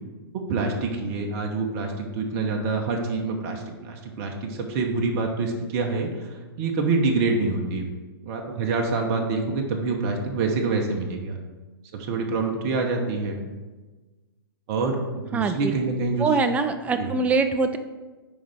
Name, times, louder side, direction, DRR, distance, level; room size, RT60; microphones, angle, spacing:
voice 1, 0.3-7.8 8.2-11.4 11.9-13.4 14.7-15.0 15.3-16.3 17.0-17.1, right 3 dB, 40° right, 2 dB, 1.0 m, -26 dB
voice 2, 15.3-15.7 16.2-17.8, right 4 dB, 10° right, 8 dB, 0.4 m, -23 dB
10.0 x 4.0 x 3.5 m, 1.3 s
hypercardioid pair, 125°, 13 cm